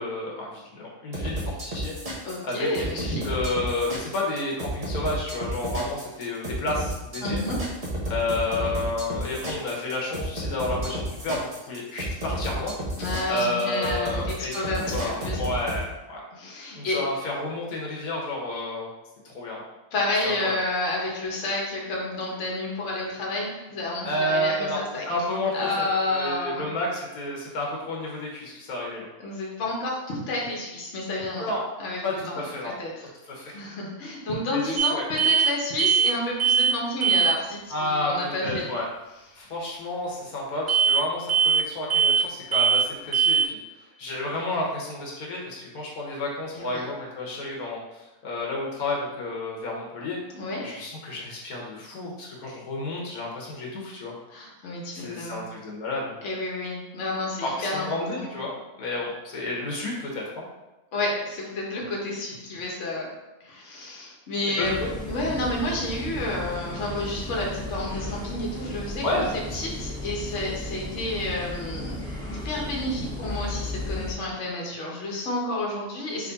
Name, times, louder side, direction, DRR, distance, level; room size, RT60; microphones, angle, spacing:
voice 1, 0.0-2.7 2.9-7.4 8.1-12.7 13.3-14.6 14.9-16.2 16.7-18.9 19.2-19.6 20.2-20.5 24.0-29.1 31.4-31.7 32.0-32.8 33.3-33.6 34.5-35.1 37.7-38.9 39.4-50.2 50.6-54.1 54.9-56.1 57.4-60.4 64.6-64.9 69.0-69.6, left 2 dB, 85° left, -3 dB, 1.4 m, -31 dB
sound 1, 1.1-15.8, right 1 dB, 30° right, 0.7 m, -31 dB
voice 2, 2.2-3.2 7.2-7.6 13.0-15.4 16.3-17.0 19.9-25.0 25.5-26.7 29.2-31.5 31.8-32.0 32.3-32.4 32.8-33.1 33.5-38.7 46.5-46.8 50.3-50.6 54.3-55.5 56.2-57.9 58.2-58.3 60.9-63.1 63.4-69.2 69.5-76.3, left 2 dB, 60° left, -2 dB, 1.2 m, -30 dB
sound 2, 34.8-34.9 35.2-35.5 35.8-36.1 36.4-36.8 37.0-37.4 40.7-41.0 41.3-41.6 41.9-42.3 42.5-42.9 43.1-43.5, right 7 dB, 80° right, 0.4 m, -20 dB
sound 3, 64.6-74.1, left 1 dB, 5° left, 0.6 m, -35 dB
3.6 x 3.2 x 4.0 m, 1.0 s
omnidirectional pair, 1.5 m